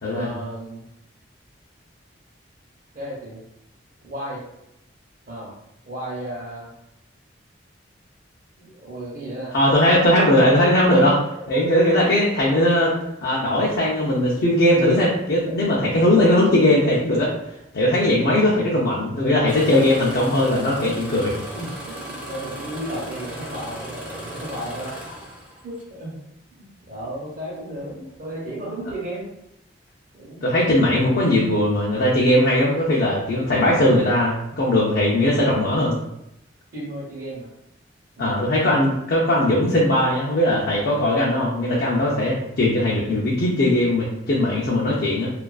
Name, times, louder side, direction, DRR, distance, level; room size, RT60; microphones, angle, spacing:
voice 1, 0.1-0.8 2.9-3.4 4.0-4.4 5.3-5.5 5.8-6.7 8.6-9.5 9.8-9.9 10.8-11.1 16.2-16.3 16.7-16.8 19.7-19.8 20.8-25.0 25.6-26.2 26.6-29.3 30.1-30.5 36.7-37.5 38.2-38.8, right 1 dB, 50° right, -8 dB, 0.7 m, -34 dB
voice 2, 9.5-11.1 11.5-12.9 13.2-17.3 17.7-21.3 30.4-36.0 38.2-45.3, left 1 dB, 55° left, -5 dB, 0.4 m, -19 dB
Engine starting, 19.5-25.9 26.9-27.2 27.8-28.2 28.8-28.9, equal, 10° right, 0.5 m, -37 dB
2.3 x 2.3 x 2.3 m, 0.83 s
head